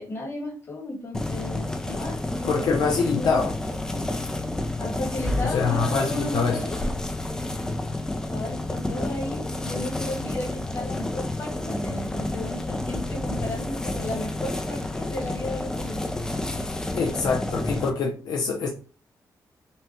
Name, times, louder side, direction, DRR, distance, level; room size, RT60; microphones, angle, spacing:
voice 1, 0.0-2.7 3.0-3.5 3.9-4.0 4.8-7.0 8.3-16.0, left 1 dB, 45° left, 1.6 m, -34 dB
sound 1, 1.1-17.9, left 2 dB, 10° left, 0.4 m, -30 dB
voice 2, 2.5-3.6 5.4-6.6 16.9-18.7, left 5 dB, 85° left, 0.7 m, -24 dB
5.6 x 2.2 x 3.0 m
wide cardioid pair, 160°, 7 cm